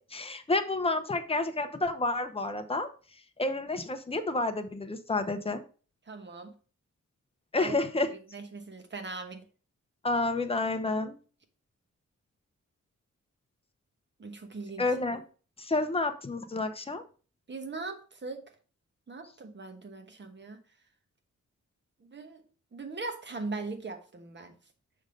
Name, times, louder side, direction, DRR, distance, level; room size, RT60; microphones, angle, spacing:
voice 1, 0.1-2.9 3.4-5.6 7.5-8.1 10.0-11.2 14.8-15.2 15.6-17.0, left 2 dB, 20° left, 7 dB, 0.7 m, -29 dB
voice 2, 6.1-6.6 7.6-7.7 8.1-9.4 14.2-14.8 17.5-18.4 19.1-20.6 22.1-22.4 22.7-24.5, right 3 dB, 35° right, 6 dB, 1.2 m, -40 dB
6.3 x 3.5 x 5.2 m, 0.38 s
wide cardioid pair, 125°, 30 cm